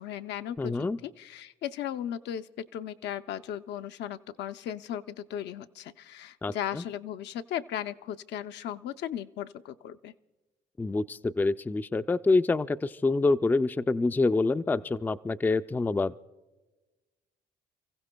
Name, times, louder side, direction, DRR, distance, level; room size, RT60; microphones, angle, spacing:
voice 1, 0.0-10.1, left 10 dB, 65° left, 9 dB, 0.5 m, -36 dB
voice 2, 0.6-1.0 6.4-6.8 10.8-16.1, left 3 dB, 10° left, 11 dB, 0.3 m, -26 dB
30.0 x 15.5 x 2.2 m, 1.2 s
hypercardioid pair, 65°, 19 cm